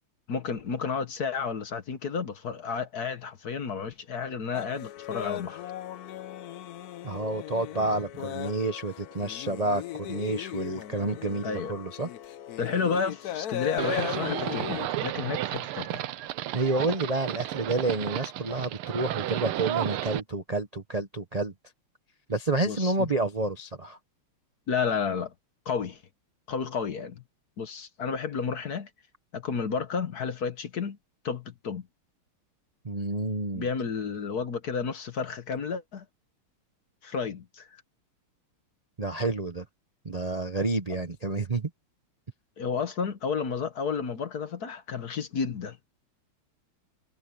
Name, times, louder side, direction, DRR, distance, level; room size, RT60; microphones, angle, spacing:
voice 1, 0.3-5.6 11.4-11.7 12.6-16.0 22.6-23.1 24.7-25.3 25.6-26.0 26.5-27.2 27.6-28.9 29.3-31.0 31.2-31.9 33.5-36.0 37.0-37.7 42.6-45.9, left 6 dB, 50° left, 1.5 m, -31 dB
sound 1, 4.5-14.9, left 12 dB, 70° left, 0.9 m, -37 dB
voice 2, 7.0-12.1 16.5-21.5 22.3-24.0 32.8-33.7 39.0-39.6 40.0-41.7, right 2 dB, 40° right, 0.5 m, -29 dB
Livestock farm animals working animals, 13.8-20.2, right 13 dB, 80° right, 1.6 m, -32 dB
omnidirectional pair, 2.4 m